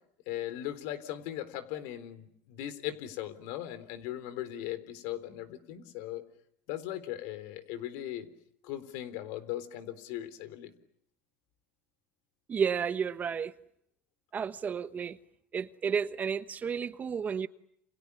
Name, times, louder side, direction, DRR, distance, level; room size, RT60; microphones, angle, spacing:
voice 1, 0.3-6.2 6.7-8.3 8.6-10.7, left 12 dB, 75° left, 4.0 m, -38 dB
voice 2, 12.5-13.5 14.3-15.2 15.5-17.5, right 6 dB, 30° right, 1.2 m, -32 dB
29.5 x 28.5 x 7.1 m
supercardioid pair, 125°, 6 cm